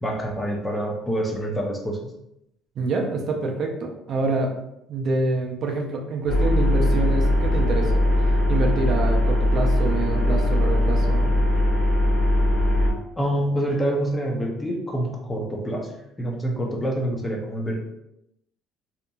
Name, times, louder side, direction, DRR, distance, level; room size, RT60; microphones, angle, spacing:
voice 1, 0.0-2.0 13.2-15.9 16.2-17.8, right 1 dB, 10° left, 0 dB, 0.5 m, -26 dB
voice 2, 2.8-4.5 4.9-7.9 8.2-11.3, right 3 dB, 45° right, 1 dB, 0.4 m, -26 dB
sound 1, 6.3-12.9, left 1 dB, 85° left, 1.3 m, -20 dB
2.8 x 2.4 x 2.2 m, 0.83 s
cardioid pair, 135°, 0 cm